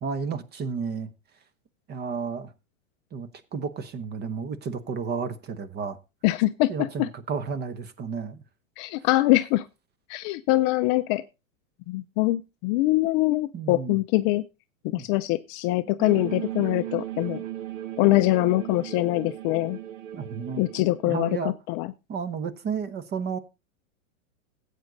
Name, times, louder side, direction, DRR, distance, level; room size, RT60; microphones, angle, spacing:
voice 1, 0.0-1.1 1.9-2.5 3.1-6.0 6.7-8.4 13.5-14.0 14.9-15.1 20.1-20.6 21.0-21.5 22.1-23.4, right 5 dB, 25° right, 1.1 m, -32 dB
voice 2, 6.2-7.1 8.8-9.7 10.1-11.2 11.9-14.4 14.8-17.4 18.0-19.8 20.6-21.9, left 18 dB, 35° left, 0.5 m, -23 dB
sound 1, 16.0-21.1, right 13 dB, 65° right, 1.2 m, -36 dB
15.0 x 8.3 x 3.9 m
supercardioid pair, 135°, 40 cm